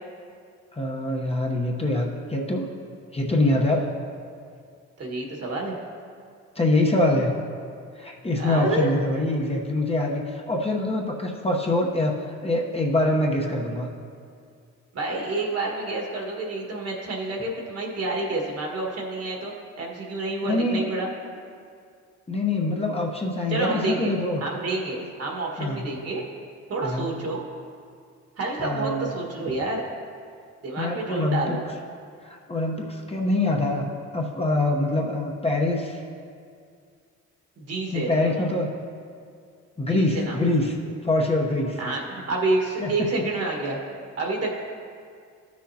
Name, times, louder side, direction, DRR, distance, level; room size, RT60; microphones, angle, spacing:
voice 1, 0.7-2.7 3.1-3.9 6.5-7.4 8.0-12.2 12.4-13.9 20.4-20.9 22.3-24.4 25.0-25.1 25.6-26.0 26.8-27.1 28.6-29.1 30.8-31.5 32.2-33.9 34.1-36.0 37.9-38.7 39.8-40.8 41.0-41.8 42.8-42.9, left 2 dB, 20° left, -1 dB, 0.9 m, -24 dB
voice 2, 5.0-5.8 8.4-8.9 14.9-21.1 23.5-24.1 24.4-26.2 26.7-27.4 28.4-29.8 30.6-31.6 37.6-38.5 39.9-40.4 41.8-43.8 44.2-44.6, right 2 dB, 55° right, -1 dB, 1.7 m, -29 dB
14.0 x 6.4 x 2.8 m, 2.2 s
cardioid pair, 90°, 30 cm